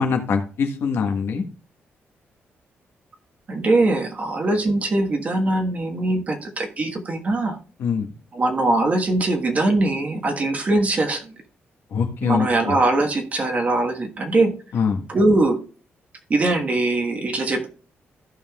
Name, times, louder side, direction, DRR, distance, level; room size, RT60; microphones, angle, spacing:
voice 1, 0.0-1.4 7.8-8.1 11.9-12.8 14.7-15.0, left 5 dB, 65° left, 4 dB, 1.3 m, -23 dB
voice 2, 3.5-7.6 8.3-11.3 12.2-14.5 15.1-15.6 16.3-17.7, right 2 dB, 35° right, 4 dB, 1.3 m, -21 dB
14.5 x 5.6 x 2.3 m, 0.37 s
wide cardioid pair, 155°, 4 cm